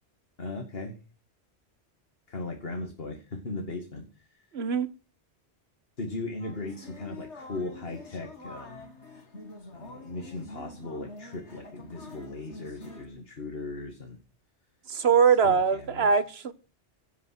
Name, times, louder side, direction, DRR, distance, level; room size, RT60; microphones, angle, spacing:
voice 1, 0.4-1.0 2.3-4.5 6.0-8.9 9.7-14.2 15.3-16.1, left 2 dB, 60° left, 2.4 m, -38 dB
voice 2, 4.5-4.9 14.9-16.5, right 6 dB, 70° right, 1.4 m, -22 dB
sound 1, 6.4-13.1, left 2 dB, 85° left, 2.5 m, -46 dB
16.5 x 7.5 x 7.8 m
omnidirectional pair, 1.1 m